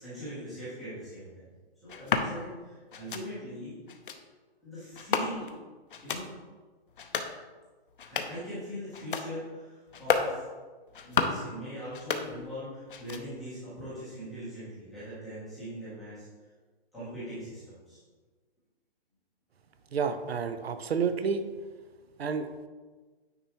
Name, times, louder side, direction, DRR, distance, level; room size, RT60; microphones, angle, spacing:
voice 1, 0.0-1.5 1.8-3.8 4.6-5.5 6.0-6.3 8.0-10.5 11.0-16.3 16.9-18.0, equal, ahead, -15 dB, 0.7 m, -41 dB
sound 1, 1.9-2.3 2.9-3.2 3.9-4.2 4.9-5.6 5.9-6.3 6.9-7.3 7.9-8.4 8.9-9.3 9.9-10.3 10.9-11.5 11.9-12.6 12.9-13.5, left 6 dB, 55° left, 0.7 m, -32 dB
voice 2, 19.9-21.4 22.2-22.7, right 6 dB, 75° right, 9 dB, 0.7 m, -30 dB
9.2 x 4.3 x 2.9 m, 1.4 s
hypercardioid pair, 175°, 32 cm